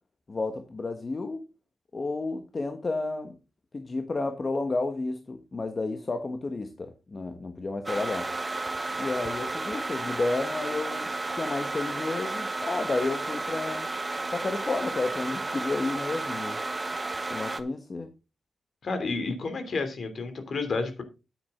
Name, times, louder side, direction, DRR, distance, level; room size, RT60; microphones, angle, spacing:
voice 1, 0.3-1.4 1.9-3.3 3.7-8.3 9.0-13.9 14.3-16.6 17.3-18.1, left 3 dB, 40° left, 1.3 m, -31 dB
sound 1, 7.9-17.6, right 2 dB, 25° right, 1.2 m, -32 dB
voice 2, 18.8-21.0, left 3 dB, 60° left, 2.9 m, -30 dB
9.6 x 8.7 x 3.7 m
cardioid pair, 70°, 0 cm